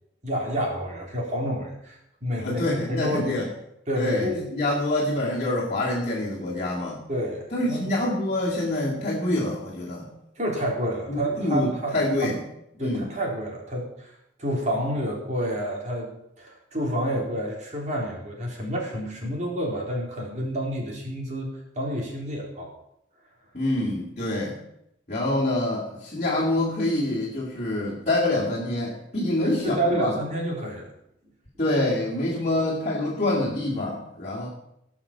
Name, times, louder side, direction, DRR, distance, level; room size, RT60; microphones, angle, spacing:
voice 1, 0.2-2.6 2.9-3.4 3.9-4.4 7.1-7.9 10.4-11.9 12.2-12.3 12.8-14.1 14.4-22.7 29.4-30.9, equal, 40° right, -1 dB, 3.8 m, -29 dB
voice 2, 2.4-3.5 3.9-7.0 7.5-10.1 11.1-12.4 12.8-13.1 23.5-24.6 25.1-30.2 31.6-34.5, left 1 dB, 35° left, -5 dB, 2.5 m, -26 dB
17.5 x 6.2 x 7.3 m, 0.81 s
head